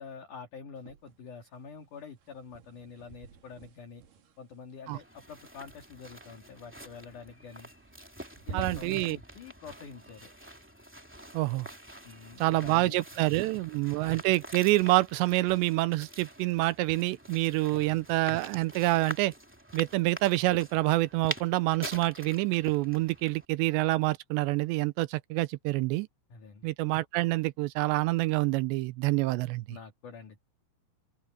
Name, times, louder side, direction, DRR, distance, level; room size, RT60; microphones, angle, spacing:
voice 1, 0.0-4.0 4.4-7.7 8.5-10.3 12.0-13.0 13.8-13.9 17.7-18.0 26.3-26.7 29.7-30.4, left 5 dB, 50° left, 3.3 m, -47 dB
sound 1, 0.8-1.5 1.7-5.8 7.5-8.1 8.4-9.2, right 5 dB, 55° right, 3.7 m, -46 dB
sound 2, 4.9-23.4, right 1 dB, 5° right, 1.4 m, -46 dB
voice 2, 8.5-9.2 11.3-11.7 12.4-19.3 19.7-26.1 26.6-29.6, right 19 dB, 85° right, 2.8 m, -27 dB
open air
omnidirectional pair, 5.0 m